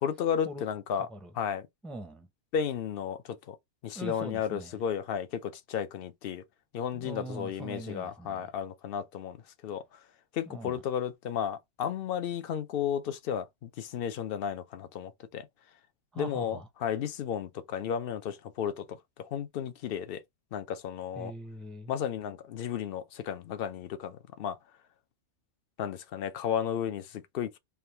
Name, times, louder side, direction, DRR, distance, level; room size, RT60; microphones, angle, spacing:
voice 1, 0.0-1.1 1.4-1.7 2.5-3.6 3.8-6.4 6.7-9.4 9.6-9.8 10.3-15.5 16.2-18.9 19.2-20.2 20.5-21.3 21.9-24.6 25.8-27.6, left 8 dB, 60° left, 0.7 m, -33 dB
voice 2, 1.0-1.3 1.8-2.3 3.9-4.8 6.9-8.5 10.5-10.8 16.1-16.7 21.1-21.9, right 1 dB, ahead, 0.5 m, -42 dB
3.4 x 2.3 x 4.3 m
omnidirectional pair, 1.2 m